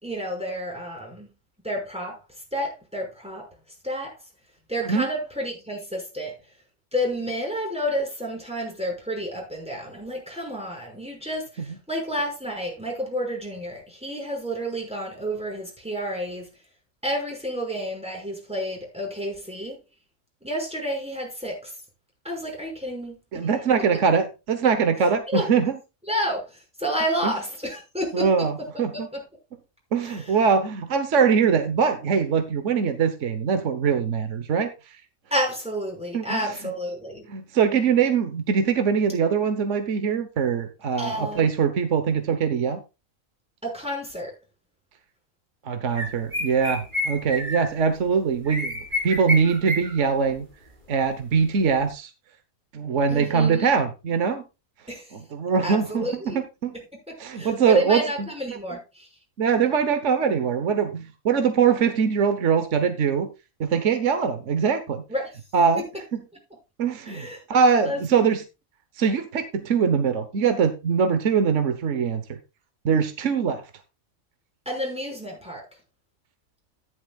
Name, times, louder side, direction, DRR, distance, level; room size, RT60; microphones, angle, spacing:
voice 1, 0.0-1.3 1.6-2.2 2.5-3.5 3.8-4.1 4.7-6.3 6.9-16.5 17.0-19.8 20.4-21.7 22.2-23.5 25.0-25.5 26.1-28.5 28.7-29.2 30.0-30.3 35.3-37.2 41.0-41.5 43.6-44.3 53.1-53.7 54.9-55.2 55.6-56.4 57.1-59.1 65.1-65.3 67.1-67.4 67.8-68.0 74.7-75.6, equal, 5° right, 5.9 m, -30 dB
voice 2, 23.3-25.7 27.2-27.3 28.1-29.1 29.9-35.0 36.1-36.4 37.3-42.8 45.6-48.8 49.0-50.5 50.9-52.1 52.7-54.4 55.3-56.7 57.2-58.6 59.4-63.3 63.6-65.0 65.5-65.8 66.8-68.4 69.0-72.4 72.8-73.6, right 6 dB, 60° right, 1.4 m, -22 dB
sound 1, 45.9-47.9 48.5-50.0 50.2-50.4 51.2-51.3 51.7-51.8, left 1 dB, 35° right, 3.1 m, -29 dB
14.0 x 11.5 x 2.4 m
omnidirectional pair, 1.5 m